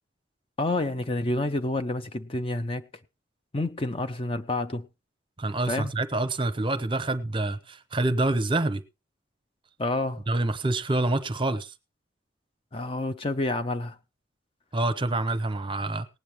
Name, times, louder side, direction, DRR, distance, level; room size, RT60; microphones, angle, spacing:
voice 1, 0.6-2.8 3.5-4.9 5.7-5.9 9.8-10.2 11.5-11.6 12.7-14.0, left 2 dB, 30° left, 0.5 m, -29 dB
voice 2, 5.4-8.8 10.3-11.7 14.7-16.1, right 2 dB, 25° right, 0.7 m, -27 dB
19.0 x 8.8 x 3.1 m
head